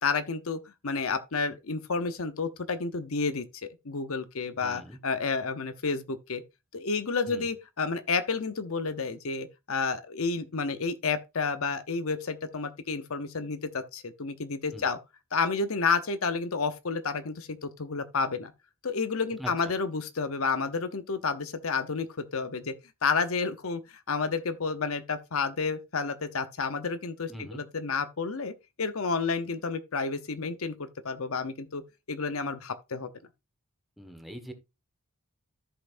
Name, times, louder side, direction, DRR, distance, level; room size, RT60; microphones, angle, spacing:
voice 1, 0.0-6.4 6.7-15.0 15.3-18.5 18.8-22.7 23.0-23.8 24.1-31.8 32.1-33.1, left 4 dB, 65° left, 0.9 m, -30 dB
voice 2, 4.6-5.0 7.3-7.5 14.7-14.9 19.4-19.5 27.3-27.6 34.0-34.5, equal, ahead, 1.4 m, -42 dB
13.5 x 5.8 x 2.6 m
head